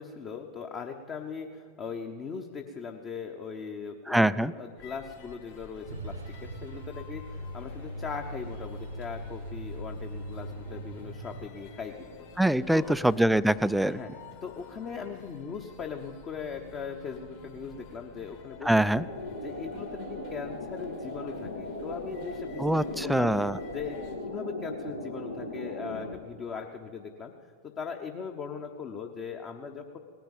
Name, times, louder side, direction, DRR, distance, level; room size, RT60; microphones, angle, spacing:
voice 1, 0.0-12.3 12.7-13.0 13.8-14.1 14.4-18.7 19.4-23.3 23.7-24.0 24.3-27.3 27.6-30.0, left 6 dB, 30° left, 4 dB, 1.0 m, -39 dB
voice 2, 4.1-4.5 12.4-14.0 18.6-19.0 22.6-23.6, right 1 dB, ahead, 16 dB, 0.3 m, -24 dB
sound 1, 4.8-24.2, left 6 dB, 55° left, 3.0 m, -50 dB
Truck, 5.9-11.5, right 1 dB, 70° right, 0.9 m, -40 dB
sound 2, 19.0-26.1, left 1 dB, 80° left, 1.5 m, -38 dB
18.0 x 10.5 x 7.3 m, 2.2 s
figure-of-eight pair, 90°, 0 cm